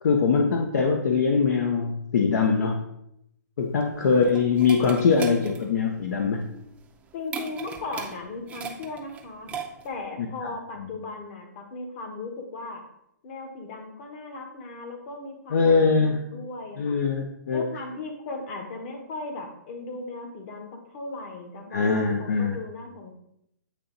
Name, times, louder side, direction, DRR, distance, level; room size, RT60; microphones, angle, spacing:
voice 1, 0.0-2.8 3.6-6.5 10.4-10.5 15.5-16.2 16.8-17.7 21.7-22.6, left 5 dB, 65° left, 3 dB, 0.7 m, -22 dB
sound 1, 3.6-10.1, right 6 dB, 15° right, 0.5 m, -39 dB
voice 2, 7.1-9.5 9.8-12.8 13.2-17.0 17.5-23.1, left 3 dB, 40° left, 3 dB, 1.3 m, -37 dB
8.3 x 2.9 x 3.9 m, 0.77 s
hypercardioid pair, 140°, 10 cm